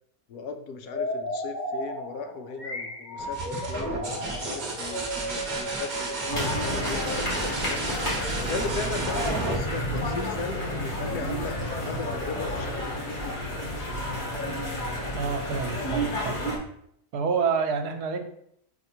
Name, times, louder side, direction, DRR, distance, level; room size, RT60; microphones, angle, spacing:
voice 1, 0.3-8.0 8.3-13.4, left 4 dB, 80° left, 6 dB, 1.2 m, -37 dB
sound 1, 0.8-7.5, equal, 30° left, 1.1 m, -35 dB
sound 2, 3.2-10.8 12.5-13.1, right 3 dB, 35° right, 0.8 m, -33 dB
sound 3, 6.3-16.6, equal, 50° left, 2.2 m, -30 dB
voice 2, 15.1-16.4 17.1-18.3, right 5 dB, 75° right, 6 dB, 1.3 m, -28 dB
4.7 x 4.6 x 4.3 m, 0.71 s
omnidirectional pair, 1.7 m